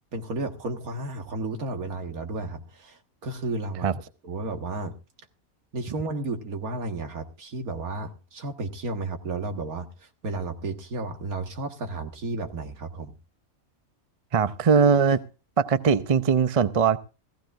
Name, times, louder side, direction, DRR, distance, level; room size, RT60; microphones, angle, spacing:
voice 1, 0.1-3.9 4.2-4.9 5.7-13.1, right 2 dB, 85° right, 2.1 m, -33 dB
voice 2, 14.3-15.2 15.6-17.0, right 6 dB, 35° right, 0.6 m, -20 dB
18.5 x 15.5 x 2.5 m
omnidirectional pair, 1.5 m